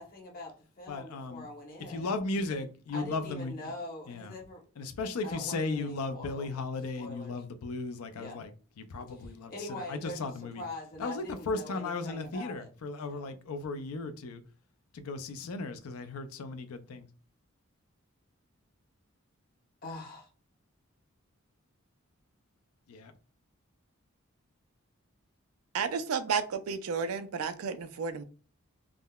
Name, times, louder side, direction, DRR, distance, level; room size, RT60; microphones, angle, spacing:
voice 1, 0.0-2.1 2.9-4.6 5.2-6.6 7.0-7.3 8.1-8.4 9.1-12.7 13.1-13.3 19.8-20.3, left 1 dB, 40° left, 0.9 m, -43 dB
voice 2, 0.9-1.5 1.9-3.7 4.1-4.4 4.8-8.5 8.8-10.6 11.0-14.4 14.9-17.1 22.9-23.1, left 3 dB, 90° left, 0.4 m, -36 dB
voice 3, 25.7-28.2, right 6 dB, 85° right, 0.4 m, -32 dB
3.5 x 2.1 x 2.3 m
head